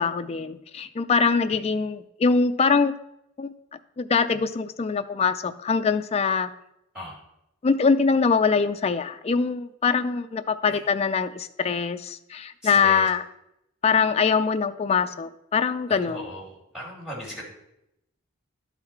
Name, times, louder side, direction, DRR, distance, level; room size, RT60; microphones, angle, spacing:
voice 1, 0.0-2.9 3.4-3.5 4.0-6.5 7.6-13.2 13.8-16.3, left 5 dB, 30° left, 9 dB, 0.4 m, -23 dB
voice 2, 12.6-13.1 15.9-17.4, equal, 5° right, -5 dB, 2.7 m, -37 dB
11.5 x 4.1 x 4.3 m, 0.82 s
head